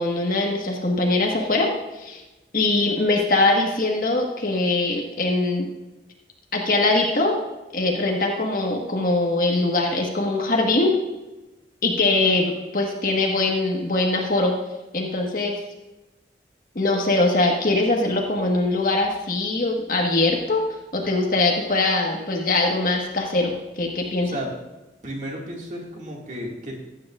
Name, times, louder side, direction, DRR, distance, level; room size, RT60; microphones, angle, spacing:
voice 1, 0.0-2.2 2.5-5.7 6.5-7.4 7.7-10.9 11.8-14.5 14.9-15.6 16.7-20.6 20.9-24.3, left 2 dB, 50° left, 0 dB, 1.5 m, -22 dB
voice 2, 25.0-26.8, equal, 40° right, -1 dB, 2.1 m, -33 dB
15.0 x 9.2 x 2.5 m, 1.0 s
head